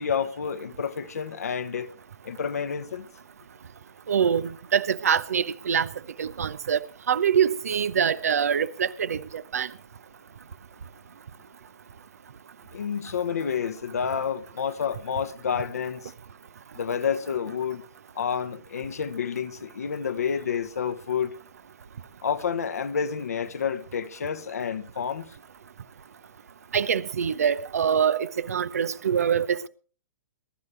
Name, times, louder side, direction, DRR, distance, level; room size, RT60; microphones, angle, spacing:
voice 1, 0.0-1.9 2.2-3.1 12.7-16.1 16.7-17.8 18.1-21.3 22.2-25.2, left 7 dB, 65° left, 1.3 m, -29 dB
voice 2, 4.1-5.9 6.2-9.7 26.7-29.7, right 8 dB, 65° right, 0.8 m, -25 dB
21.5 x 12.0 x 3.3 m
figure-of-eight pair, 115°, 9 cm